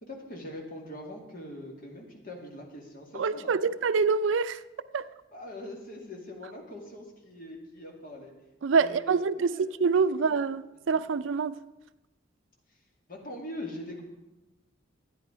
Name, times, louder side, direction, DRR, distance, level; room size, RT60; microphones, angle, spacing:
voice 1, 0.0-3.8 5.3-8.3 8.7-9.6 10.2-10.4 10.7-11.1 12.7-12.8 13.1-14.0, left 1 dB, 45° left, 2.3 m, -42 dB
voice 2, 3.1-4.6 4.9-5.1 8.6-11.6, right 5 dB, 75° right, 0.4 m, -26 dB
12.5 x 9.7 x 5.0 m
head